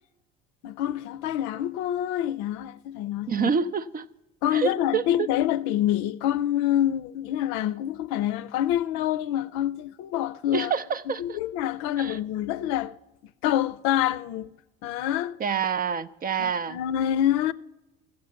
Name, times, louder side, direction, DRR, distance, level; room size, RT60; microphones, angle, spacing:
voice 1, 0.6-3.5 4.4-10.7 11.2-13.0 13.4-14.5 14.8-15.4 16.4-17.5, left 11 dB, 70° left, 0.6 m, -26 dB
voice 2, 3.3-4.1 4.5-5.1 10.5-11.4 12.0-12.2 15.4-16.8, right 6 dB, 30° right, 0.5 m, -27 dB
14.5 x 7.7 x 7.0 m
hypercardioid pair, 75°, 30 cm